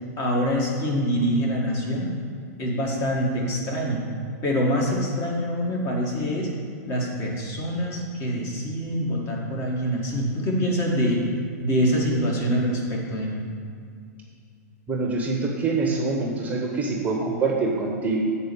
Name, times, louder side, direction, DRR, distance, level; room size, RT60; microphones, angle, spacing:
voice 1, 0.2-2.1 2.6-4.1 4.4-6.5 6.9-11.3 11.6-13.4, equal, 30° left, -1 dB, 1.7 m, -25 dB
voice 2, 14.9-18.2, right 3 dB, 15° right, -1 dB, 0.9 m, -25 dB
8.2 x 4.3 x 6.9 m, 2.4 s
hypercardioid pair, 135°, 9 cm